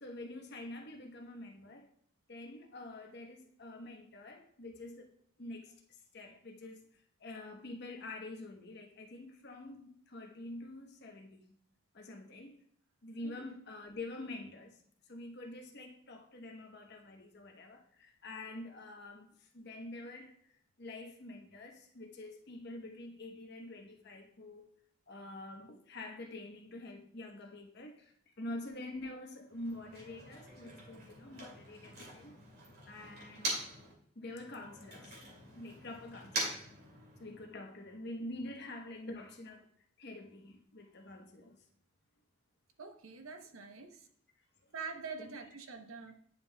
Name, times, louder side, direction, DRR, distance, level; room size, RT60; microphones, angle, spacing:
voice 1, 0.0-1.9 2.3-5.1 5.4-5.7 6.1-11.6 11.9-12.6 13.0-14.8 15.1-20.5 20.8-24.7 25.1-32.4 32.8-33.6 34.1-35.2 35.5-36.6 37.2-39.7 40.0-41.6 45.2-45.3, left 2 dB, 50° left, 0.9 m, -47 dB
Motor vehicle (road), 29.5-33.9 34.2-37.5, right 2 dB, 50° right, 2.2 m, -43 dB
voice 2, 42.8-43.9 44.7-46.1, right 5 dB, 80° right, 0.8 m, -45 dB
9.6 x 5.4 x 2.2 m
head